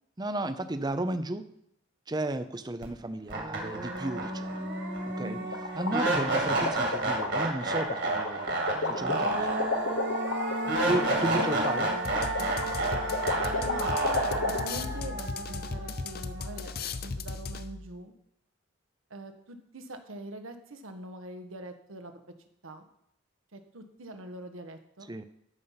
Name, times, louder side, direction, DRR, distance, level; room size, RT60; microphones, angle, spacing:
voice 1, 0.2-1.5 2.1-4.7 5.0-5.4 5.7-9.6 10.8-11.9 25.1-25.2, right 1 dB, 20° right, 11 dB, 0.6 m, -33 dB
sound 1, 2.8-2.9 3.3-16.4, right 2 dB, 55° right, 2.1 m, -30 dB
voice 2, 5.2-5.6 10.7-12.3 13.5-16.7 17.0-18.1 19.1-22.1 22.6-22.9 23.5-25.1, right 2 dB, 80° right, 6 dB, 1.2 m, -42 dB
sound 2, 5.5-14.6, left 3 dB, 85° left, 1.0 m, -32 dB
sound 3, 12.0-17.9, left 4 dB, 50° left, 0.6 m, -37 dB
13.0 x 5.6 x 5.7 m, 0.73 s
head